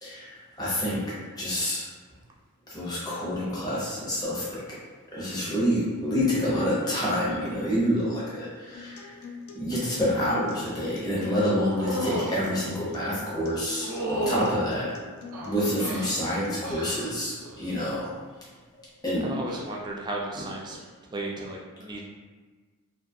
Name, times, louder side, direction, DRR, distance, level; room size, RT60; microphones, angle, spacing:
voice 1, 0.0-1.8 2.7-4.8 5.1-9.3 9.5-14.9 15.4-18.1 18.7-19.3, equal, 15° left, -8 dB, 0.6 m, -28 dB
Acoustic guitar, 8.7-16.7, left 5 dB, 75° left, 0.4 m, -44 dB
sound 1, 11.7-12.4 13.8-14.6 15.3-16.1 16.6-17.1 17.4-17.9 19.4-19.6, right 1 dB, 85° right, 0.6 m, -31 dB
voice 2, 19.2-20.8 21.1-22.0, right 2 dB, 20° right, -2 dB, 0.3 m, -34 dB
2.5 x 2.3 x 2.6 m, 1.4 s
head